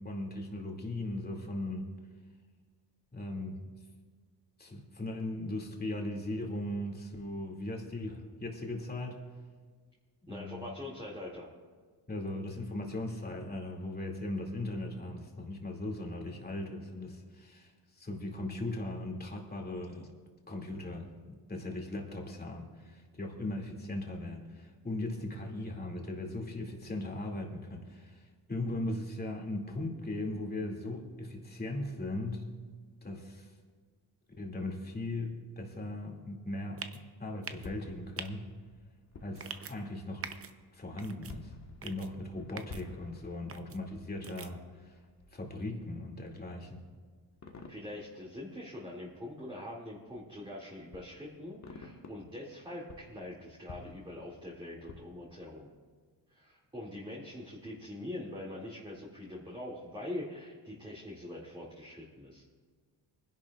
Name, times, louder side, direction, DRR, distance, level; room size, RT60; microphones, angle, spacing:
voice 1, 0.0-1.9 3.1-3.7 4.6-9.2 10.2-10.6 12.1-20.1 20.5-32.4 33.0-33.5 34.4-36.8 37.2-38.5 39.2-40.2 40.7-41.5 41.8-45.0 45.3-46.8, left 1 dB, 20° left, 0 dB, 2.4 m, -38 dB
voice 2, 10.3-11.5 47.7-55.7 56.3-62.4, left 1 dB, 10° right, -5 dB, 2.4 m, -43 dB
sound 1, 36.8-37.0 37.4-37.7 38.2-38.3 39.3-39.7 40.2-40.5 41.0-41.3 41.8-42.1 42.6-42.8 43.5-43.8 44.2-44.5, right 6 dB, 35° right, 0.7 m, -43 dB
sound 2, 37.6-49.4 50.2-50.3 50.9-52.5 52.8-55.6, left 3 dB, 40° left, 1.4 m, -53 dB
24.0 x 11.0 x 2.4 m, 1.5 s
cardioid pair, 95°, 43 cm